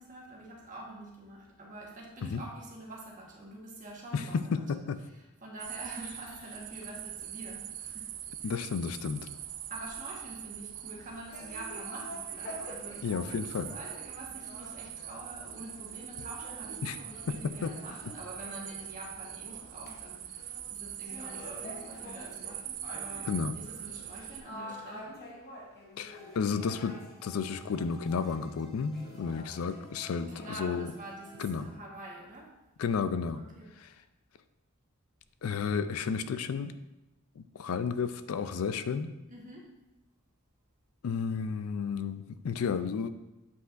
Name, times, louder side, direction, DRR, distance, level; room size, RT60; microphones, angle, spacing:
voice 1, 0.0-4.4 4.7-4.8 5.1-8.2 8.4-8.6 9.7-25.3 30.2-32.6 33.4-33.7 39.3-39.8, right 1 dB, 35° right, -2 dB, 1.3 m, -46 dB
voice 2, 4.1-4.6 4.9-5.0 8.4-9.3 13.0-13.7 16.8-17.0 17.3-17.7 23.2-23.5 26.0-30.3 30.6-30.9 31.4-31.7 32.8-33.4 35.4-36.7 37.4-39.1 41.0-43.1, left 6 dB, 80° left, 12 dB, 0.4 m, -32 dB
sound 1, 5.6-24.4, right 11 dB, 70° right, 0.5 m, -43 dB
sound 2, 11.3-20.1 20.3-28.5 28.9-30.7, left 1 dB, 50° left, 0.8 m, -48 dB
sound 3, 26.1-31.8, right 2 dB, ahead, 0.9 m, -55 dB
8.0 x 5.5 x 2.5 m, 0.98 s
head